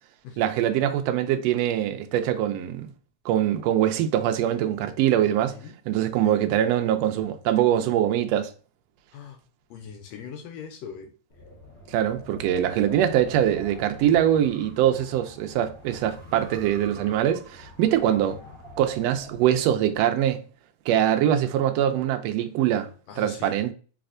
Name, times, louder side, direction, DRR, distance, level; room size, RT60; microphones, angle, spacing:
voice 1, 0.4-2.9 3.2-5.6 5.9-8.5 11.9-18.3 18.8-20.4 20.9-22.9 23.2-23.7, right 11 dB, 90° right, 1.4 m, -23 dB
voice 2, 6.1-6.5 9.1-9.4 9.7-11.1 17.8-18.4 21.1-21.2 23.1-23.5, left 7 dB, 80° left, 1.5 m, -42 dB
Wind, 11.3-20.0, left 1 dB, 50° left, 1.1 m, -45 dB
4.1 x 3.3 x 2.5 m
omnidirectional pair, 3.4 m